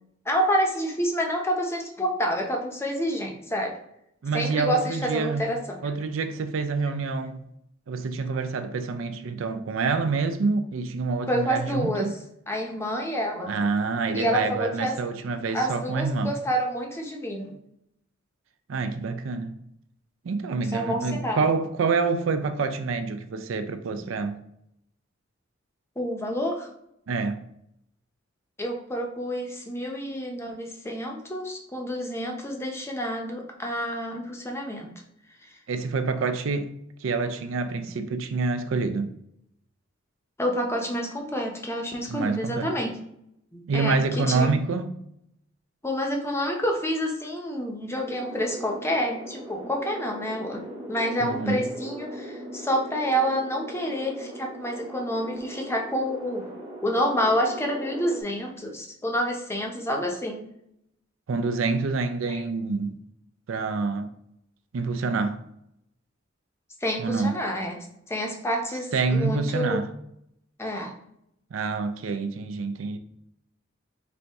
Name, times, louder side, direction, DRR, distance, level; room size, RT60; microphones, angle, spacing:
voice 1, 0.3-3.7 4.3-5.8 11.3-12.1 12.5-13.6 14.1-15.0 15.5-17.5 20.5-21.5 26.0-26.7 28.6-34.9 40.4-42.9 43.5-44.6 45.8-56.5 56.8-60.4 62.3-62.4 66.8-69.8 70.6-70.9, equal, 15° left, 0.6 m, -28 dB
voice 2, 4.2-5.5 5.8-7.4 7.9-12.1 13.5-16.3 18.7-19.6 20.2-24.4 27.1-27.4 35.7-36.7 37.0-39.1 42.1-42.7 43.7-44.9 51.2-51.6 61.3-63.0 63.5-64.1 64.7-65.4 67.0-67.3 68.9-69.9 71.5-73.0, right 4 dB, 75° right, 0.4 m, -27 dB
sound 1, 48.1-58.2, right 1 dB, 20° right, 0.8 m, -39 dB
4.3 x 2.6 x 3.4 m
head